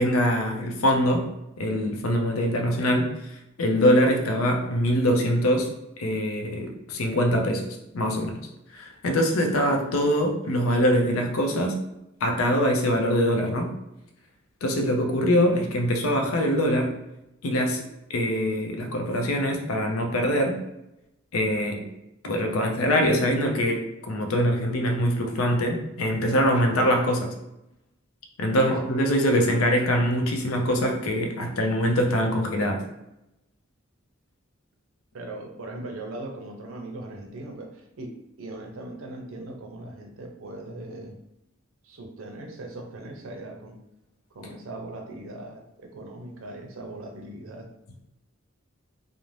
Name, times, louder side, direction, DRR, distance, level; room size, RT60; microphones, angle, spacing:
voice 1, 0.0-1.3 1.6-3.2 3.6-5.7 6.0-8.4 8.7-11.8 12.2-13.7 14.6-17.0 17.4-17.8 18.1-20.6 21.3-21.9 22.2-27.3 28.4-32.8, equal, 80° left, 3 dB, 0.5 m, -23 dB
voice 2, 35.1-41.2 41.8-43.8 44.3-47.7, right 2 dB, 75° right, 2 dB, 0.5 m, -39 dB
2.5 x 2.0 x 3.1 m, 0.87 s
head